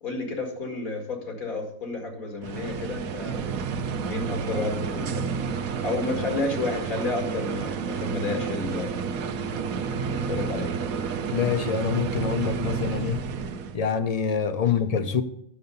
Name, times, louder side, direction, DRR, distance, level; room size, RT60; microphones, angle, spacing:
voice 1, 0.0-3.4 4.0-5.3 5.8-9.0 9.9-10.7, left 3 dB, 85° left, 2 dB, 2.6 m, -31 dB
sound 1, 2.4-13.8, right 6 dB, 80° right, 1.1 m, -30 dB
voice 2, 11.3-13.2 13.7-15.2, left 7 dB, 60° left, 10 dB, 0.4 m, -25 dB
9.4 x 6.6 x 5.4 m, 0.74 s
omnidirectional pair, 1.4 m